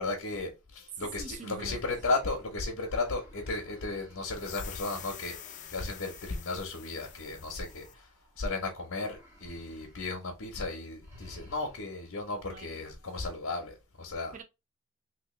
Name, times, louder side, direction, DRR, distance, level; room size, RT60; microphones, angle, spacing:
voice 1, 0.0-8.1 8.4-14.3, left 3 dB, 70° left, 0.8 m, -35 dB
voice 2, 0.9-1.9 12.4-12.8 14.3-14.4, right 4 dB, 35° right, 0.5 m, -44 dB
sound 1, 1.4-8.5 9.0-10.2 10.5-10.7 11.0-12.1, left 1 dB, 10° right, 1.2 m, -56 dB
sound 2, 4.3-8.0, left 10 dB, 35° left, 0.4 m, -47 dB
3.0 x 3.0 x 3.0 m
head